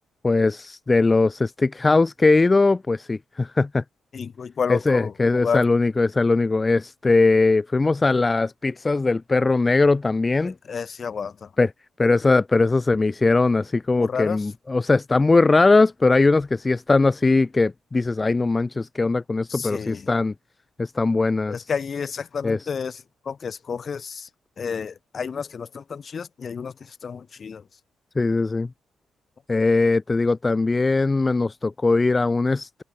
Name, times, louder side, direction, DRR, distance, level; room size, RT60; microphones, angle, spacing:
voice 1, 0.2-3.8 4.7-10.5 11.6-11.7 12.0-20.3 20.8-21.7 22.4-22.6 28.2-28.7 29.5-32.8, left 3 dB, 30° left, 0.6 m, -20 dB
voice 2, 4.1-5.6 10.4-11.5 14.0-14.4 19.5-20.1 21.5-24.3 24.6-27.6, left 6 dB, 50° left, 3.1 m, -30 dB
hypercardioid pair, 45°, 0 cm